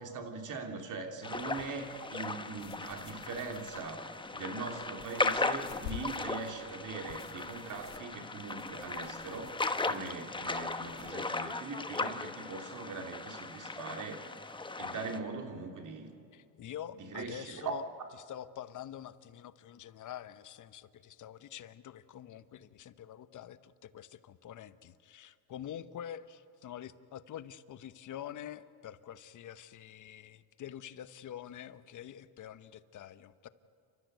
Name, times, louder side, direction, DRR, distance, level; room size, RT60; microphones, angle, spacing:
voice 1, 0.0-14.3 14.8-16.1 17.0-17.8, right 4 dB, 50° right, 4 dB, 3.0 m, -41 dB
sound 1, 1.2-15.2, left 3 dB, 10° left, 1.1 m, -37 dB
sound 2, 1.3-11.1, left 14 dB, 85° left, 1.0 m, -52 dB
voice 2, 16.3-17.8 18.3-33.5, left 10 dB, 50° left, 13 dB, 1.0 m, -46 dB
28.5 x 13.0 x 9.3 m, 2.5 s
supercardioid pair, 90°, 40 cm